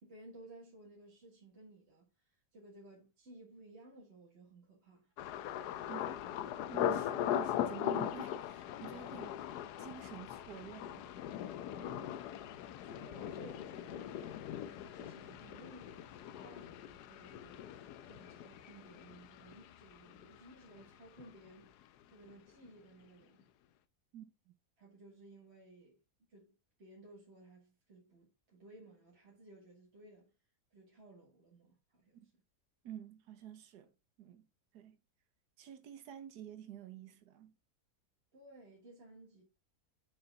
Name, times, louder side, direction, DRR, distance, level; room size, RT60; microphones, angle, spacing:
voice 1, 0.0-5.1 11.7-12.3 12.8-23.5 24.8-26.0 26.3-30.3 30.7-32.3 38.3-39.4, right 2 dB, 45° right, 1.8 m, -57 dB
Thunder, 5.2-20.9 21.2-21.8 22.2-22.5, left 10 dB, 90° left, 1.2 m, -40 dB
voice 2, 6.7-11.1 24.1-24.5 32.8-33.9 34.2-34.4 34.7-35.0 35.6-37.5, right 9 dB, 85° right, 1.5 m, -50 dB
6.7 x 5.7 x 3.5 m
omnidirectional pair, 1.7 m